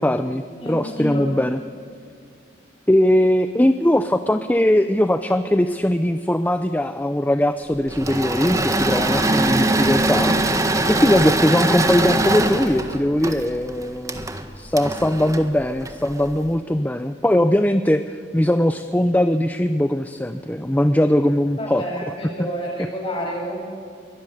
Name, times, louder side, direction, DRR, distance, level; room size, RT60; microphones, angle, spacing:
voice 1, 0.0-1.6 2.9-10.4 10.9-18.0 18.3-21.8 22.4-22.5, left 1 dB, 10° left, 10 dB, 0.6 m, -20 dB
voice 2, 0.6-1.3 8.9-9.3 10.8-11.6 21.6-23.7, equal, 30° left, -1 dB, 7.7 m, -30 dB
Engine / Mechanisms, 7.9-16.3, right 2 dB, 20° right, 1.6 m, -22 dB
23.0 x 19.0 x 9.9 m, 2.3 s
head